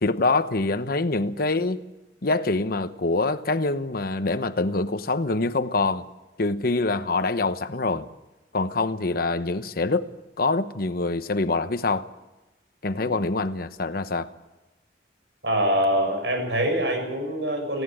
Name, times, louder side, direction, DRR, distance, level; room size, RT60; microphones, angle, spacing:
voice 1, 0.0-1.8 2.2-6.1 6.4-8.1 8.5-10.0 10.4-12.1 12.8-14.3, left 3 dB, 55° left, 1.0 m, -25 dB
voice 2, 15.4-17.8, equal, 75° right, 6.9 m, -24 dB
19.0 x 16.5 x 8.7 m
head